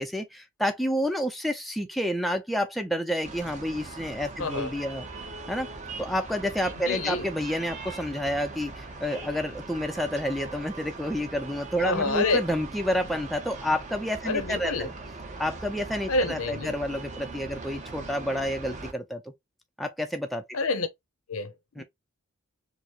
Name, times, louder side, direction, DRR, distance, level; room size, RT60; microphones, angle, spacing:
voice 1, 0.0-5.1 5.5-5.7 6.0-14.9 15.4-19.2 19.8-20.4 21.8-21.9, equal, ahead, 0.4 m, -29 dB
sound 1, 3.2-18.9, right 3 dB, 35° right, 0.7 m, -40 dB
voice 2, 4.4-4.7 6.8-7.2 11.8-12.4 14.3-14.9 16.1-16.7 20.5-20.9 21.3-21.8, left 3 dB, 70° left, 0.7 m, -27 dB
4.6 x 2.0 x 2.8 m
head